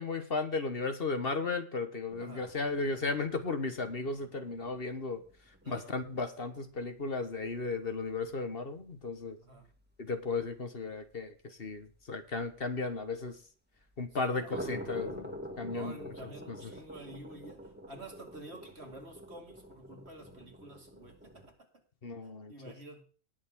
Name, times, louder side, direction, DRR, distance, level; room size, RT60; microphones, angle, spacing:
voice 1, 0.0-5.2 5.7-9.4 10.0-13.4 14.0-16.0 16.2-16.3 22.0-22.5, left 3 dB, 50° left, 1.6 m, -35 dB
sound 1, 2.1-8.0 8.3-8.4 8.8-8.9 9.2-9.3 9.7-9.8 12.6-12.7 14.1-21.5, equal, 10° right, 2.2 m, -47 dB
voice 2, 2.2-2.5 5.6-5.9 9.4-9.7 14.2-15.1 15.7-21.7 22.2-23.0, right 1 dB, 60° right, 2.8 m, -50 dB
19.0 x 7.3 x 3.8 m
omnidirectional pair, 1.2 m